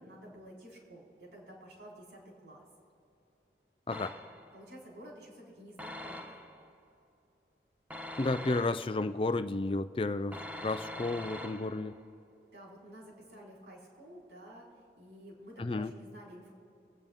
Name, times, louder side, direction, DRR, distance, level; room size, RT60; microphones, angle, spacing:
voice 1, 0.0-2.6 4.5-6.4 12.5-14.7 15.0-16.5, equal, 75° right, -3 dB, 3.8 m, -51 dB
voice 2, 3.9-4.2 8.2-11.9 15.6-15.9, left 2 dB, 30° left, 11 dB, 0.4 m, -32 dB
sound 1, 3.9-4.6 5.8-6.7 7.9-9.1 10.3-12.0, left 1 dB, 10° right, 0.9 m, -44 dB
24.0 x 9.1 x 3.5 m, 2.7 s
head